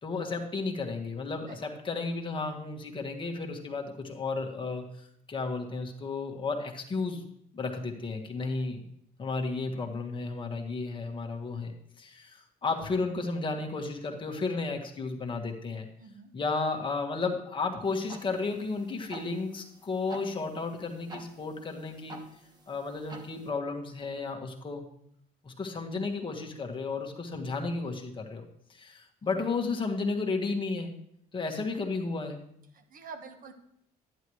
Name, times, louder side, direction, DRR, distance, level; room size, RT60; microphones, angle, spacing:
voice 1, 0.0-4.8 5.3-7.2 7.5-8.8 9.2-11.7 12.0-15.9 16.3-22.2 22.7-24.8 25.4-28.4 28.7-30.9 31.3-32.4, left 3 dB, 30° left, 2 dB, 1.5 m, -33 dB
voice 2, 16.0-16.3 29.2-29.5 32.7-33.5, right 5 dB, 55° right, 7 dB, 1.4 m, -47 dB
sound 1, 17.8-23.5, right 2 dB, 25° right, 1.3 m, -49 dB
11.0 x 9.8 x 3.1 m, 0.70 s
cardioid pair, 110°, 17 cm